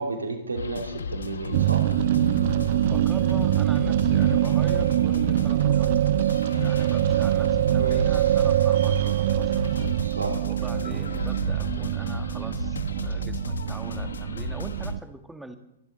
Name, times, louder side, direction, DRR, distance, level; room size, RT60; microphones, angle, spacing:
voice 1, 0.0-1.9 7.8-8.2 10.0-10.4, right 3 dB, 85° right, 2 dB, 3.0 m, -32 dB
sound 1, 0.6-15.0, left 5 dB, 75° left, 1.1 m, -34 dB
sound 2, 1.5-15.0, right 13 dB, 55° right, 0.5 m, -24 dB
voice 2, 2.8-6.2 6.6-9.8 10.4-15.6, right 1 dB, 5° right, 6 dB, 1.8 m, -42 dB
25.5 x 12.0 x 4.0 m, 0.79 s
figure-of-eight pair, 110°, 0 cm